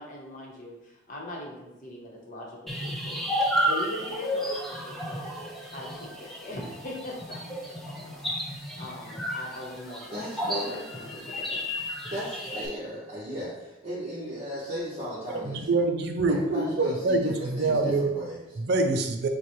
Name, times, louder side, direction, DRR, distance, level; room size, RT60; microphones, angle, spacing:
voice 1, 0.0-11.6, left 1 dB, 40° left, -2 dB, 1.0 m, -41 dB
sound 1, 2.7-12.7, equal, ahead, 0.6 m, -32 dB
voice 2, 10.1-10.8 12.1-15.9 16.2-18.6, equal, 30° right, -10 dB, 1.2 m, -36 dB
voice 3, 15.4-18.1 18.6-19.3, right 3 dB, 55° right, 4 dB, 0.5 m, -25 dB
6.9 x 2.3 x 3.1 m, 1.0 s
head